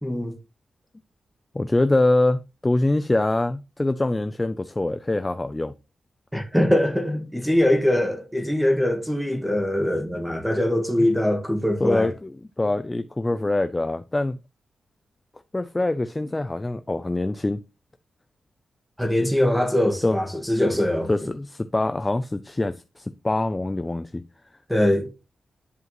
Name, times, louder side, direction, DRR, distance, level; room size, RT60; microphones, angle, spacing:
voice 1, 0.0-0.3 6.3-12.1 19.0-21.1 24.7-25.1, left 1 dB, ahead, 1.7 m, -22 dB
voice 2, 1.5-5.7 11.8-14.4 15.5-17.6 20.0-20.2 21.1-24.2, left 2 dB, 15° left, 0.4 m, -24 dB
11.0 x 4.9 x 3.1 m
wide cardioid pair, 135°, 0 cm